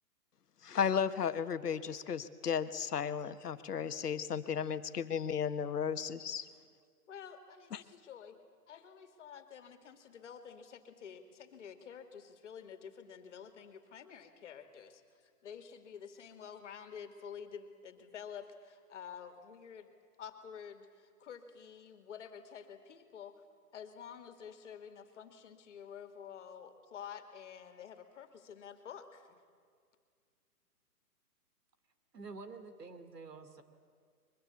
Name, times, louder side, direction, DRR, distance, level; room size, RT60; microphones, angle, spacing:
voice 1, 0.6-6.5 7.7-7.8, left 7 dB, 80° left, 11 dB, 1.4 m, -34 dB
voice 2, 7.1-19.9 20.2-23.4 23.7-29.4, left 7 dB, 50° left, 8 dB, 2.4 m, -50 dB
voice 3, 32.1-33.6, right 4 dB, 90° right, 10 dB, 2.6 m, -48 dB
23.0 x 22.0 x 8.4 m, 2.1 s
hypercardioid pair, 155°, 47 cm